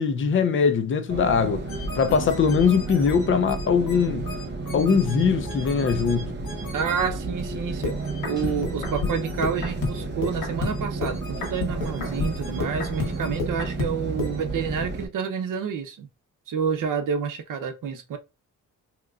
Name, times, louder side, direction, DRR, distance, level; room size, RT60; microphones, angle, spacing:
voice 1, 0.0-1.7 2.0-4.3 4.7-6.3, left 6 dB, 35° left, 0.5 m, -21 dB
sound 1, 1.1-15.1, right 3 dB, 30° right, 0.8 m, -32 dB
sound 2, 1.7-7.0 7.8-14.4, left 3 dB, 80° left, 1.4 m, -33 dB
voice 2, 6.7-8.0 8.2-16.1 16.5-18.2, right 6 dB, 70° right, 0.8 m, -29 dB
3.7 x 2.9 x 2.3 m
cardioid pair, 120°, 34 cm